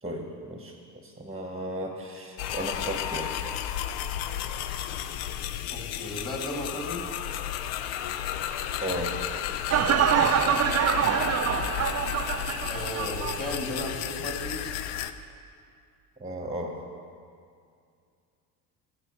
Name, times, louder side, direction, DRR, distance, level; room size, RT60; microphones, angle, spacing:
voice 1, 0.0-3.4 8.8-9.1 16.2-16.8, right 1 dB, 15° right, 2 dB, 1.2 m, -35 dB
sound 1, 2.4-15.1, left 10 dB, 65° left, 0.6 m, -33 dB
voice 2, 5.7-7.1 10.9-11.8 12.7-14.7, left 1 dB, 20° left, -1 dB, 2.3 m, -36 dB
sound 2, 9.7-13.6 13.9-14.0, right 8 dB, 35° right, 0.6 m, -25 dB
15.5 x 6.8 x 3.1 m, 2.3 s
hypercardioid pair, 55°, 46 cm